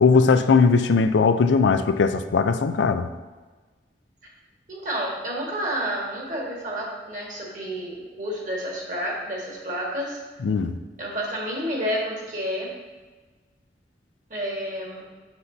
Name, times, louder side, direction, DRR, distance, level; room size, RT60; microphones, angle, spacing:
voice 1, 0.0-3.1 10.4-10.7, left 5 dB, 85° left, 10 dB, 0.4 m, -19 dB
voice 2, 4.7-10.2 11.0-12.7 14.3-15.0, equal, 45° right, -2 dB, 1.7 m, -30 dB
7.9 x 6.7 x 2.7 m, 1.3 s
head